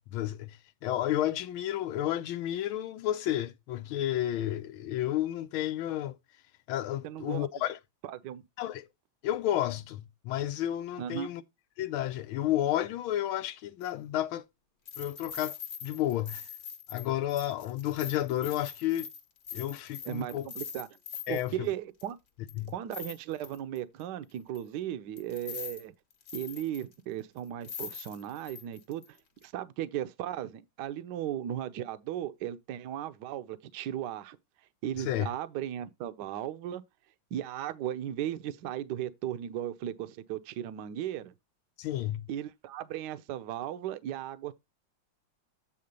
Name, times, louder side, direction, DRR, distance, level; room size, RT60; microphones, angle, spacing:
voice 1, 0.1-6.2 6.7-7.8 8.6-8.9 9.2-11.4 11.8-14.4 15.0-15.6 15.8-16.5 16.9-19.1 19.5-20.5 21.3-21.7 22.6-22.7 35.0-35.3 41.8-42.3, left 13 dB, 90° left, 1.5 m, -31 dB
voice 2, 7.0-7.5 8.0-8.4 11.0-11.3 20.0-20.9 21.3-22.2 22.7-25.9 26.3-29.0 29.4-34.4 34.8-36.8 37.3-41.3 42.3-44.5, right 11 dB, 70° right, 1.1 m, -36 dB
sound 1, 13.8-13.9 14.9-21.5 22.0-22.1 22.5-23.8 24.6-24.7 25.2-25.8 26.1-27.0 27.4-27.5 27.6-29.1 29.4-29.5, left 7 dB, 50° left, 1.5 m, -43 dB
8.7 x 3.7 x 5.2 m
omnidirectional pair, 2.2 m